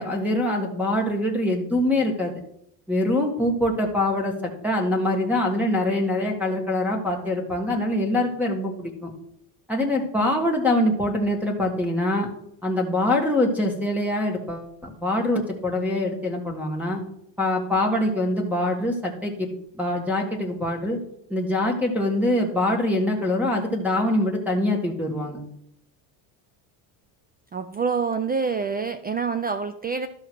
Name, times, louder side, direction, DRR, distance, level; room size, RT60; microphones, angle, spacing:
voice 1, 0.0-2.3 2.9-9.1 9.7-12.3 12.6-17.0 17.4-19.5 19.8-21.0 21.3-25.4, left 1 dB, 5° right, -3 dB, 1.7 m, -24 dB
voice 2, 27.5-30.1, right 5 dB, 20° right, 11 dB, 0.3 m, -26 dB
13.0 x 5.8 x 4.6 m, 0.72 s
cardioid pair, 115°, 48 cm